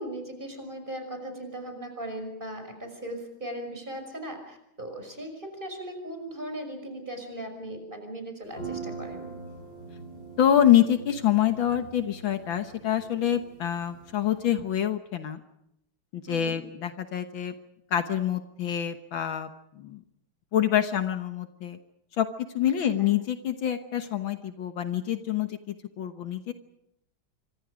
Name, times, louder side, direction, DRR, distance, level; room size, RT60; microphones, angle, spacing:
voice 1, 0.0-9.3 16.3-16.6 22.8-23.1, right 1 dB, 20° right, 5 dB, 6.0 m, -38 dB
sound 1, 8.5-14.4, right 4 dB, 50° left, 8.4 m, -43 dB
voice 2, 10.4-15.4 16.1-17.5 17.9-19.5 19.8-20.0 20.5-21.8 22.2-26.5, left 10 dB, 70° left, 8 dB, 1.9 m, -26 dB
27.0 x 25.5 x 5.1 m, 0.80 s
omnidirectional pair, 2.3 m